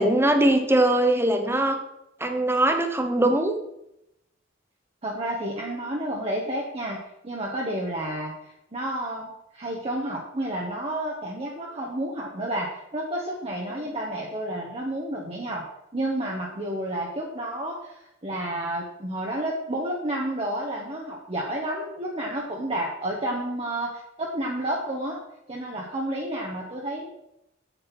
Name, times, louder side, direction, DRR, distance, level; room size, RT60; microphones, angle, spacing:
voice 1, 0.0-1.8 2.2-3.5, right 1 dB, 10° right, 5 dB, 1.1 m, -21 dB
voice 2, 5.0-15.6 15.9-25.2 25.5-27.1, right 1 dB, 30° right, -3 dB, 1.3 m, -30 dB
8.0 x 7.0 x 5.9 m, 0.83 s
head